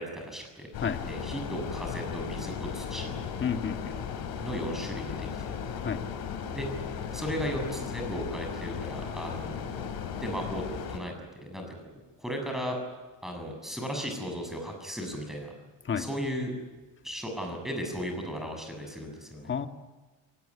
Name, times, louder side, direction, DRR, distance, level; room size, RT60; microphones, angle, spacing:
voice 1, 0.0-0.7 1.0-3.1 4.4-5.7 6.5-6.7 7.1-9.7 10.2-10.6 10.9-11.1 11.4-11.7 12.2-12.8 13.2-15.6 16.0-16.5 17.0-19.5, equal, ahead, 3 dB, 7.3 m, -35 dB
sound 1, 0.7-11.0, left 7 dB, 80° left, 4.0 m, -36 dB
voice 2, 3.4-4.0 5.8-6.0 15.9-16.1 19.5-19.7, left 7 dB, 35° left, 7 dB, 1.8 m, -30 dB
23.0 x 19.5 x 9.8 m, 1.3 s
cardioid pair, 125°, 36 cm